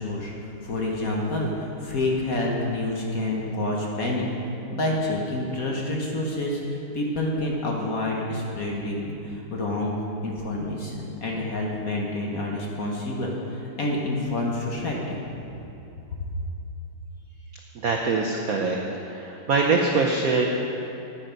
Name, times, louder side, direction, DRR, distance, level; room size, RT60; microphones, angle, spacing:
voice 1, 0.0-4.3 4.7-10.0 10.2-15.2, left 2 dB, 50° left, -1 dB, 1.4 m, -28 dB
voice 2, 17.8-18.8 19.0-20.5, right 4 dB, 70° right, 1 dB, 0.8 m, -23 dB
10.5 x 9.1 x 5.3 m, 2.9 s
omnidirectional pair, 2.4 m